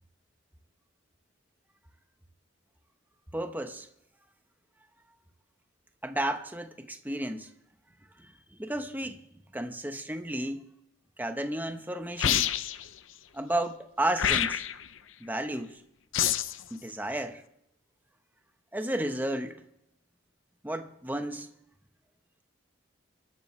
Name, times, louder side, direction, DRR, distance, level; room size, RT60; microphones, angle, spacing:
voice 1, 3.3-3.9 6.0-7.5 8.2-9.2 9.5-10.6 11.2-12.5 13.3-14.6 15.2-15.8 16.7-17.4 18.7-19.6 20.6-21.5, right 1 dB, 10° right, 7 dB, 0.9 m, -33 dB
sound 1, 12.2-12.9 14.2-14.9 16.1-16.6, left 10 dB, 75° left, 0.7 m, -27 dB
24.0 x 12.0 x 3.2 m, 0.79 s
head